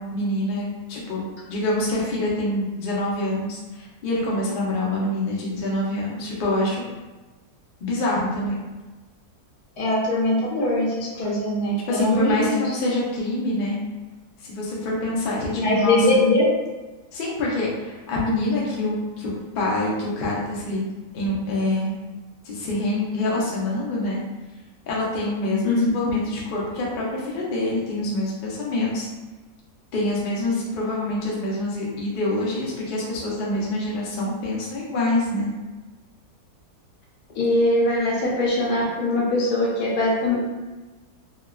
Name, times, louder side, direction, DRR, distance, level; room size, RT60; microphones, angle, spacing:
voice 1, 0.0-6.8 7.8-8.6 11.9-13.8 14.4-16.2 17.1-20.8 21.1-21.9 22.4-24.2 24.9-29.1 29.9-35.5, left 1 dB, 55° left, -5 dB, 0.6 m, -26 dB
voice 2, 9.8-12.7 15.6-16.4 25.6-26.0 37.4-40.4, left 1 dB, 75° left, -4 dB, 1.3 m, -21 dB
3.3 x 2.2 x 2.3 m, 1.2 s
omnidirectional pair, 1.6 m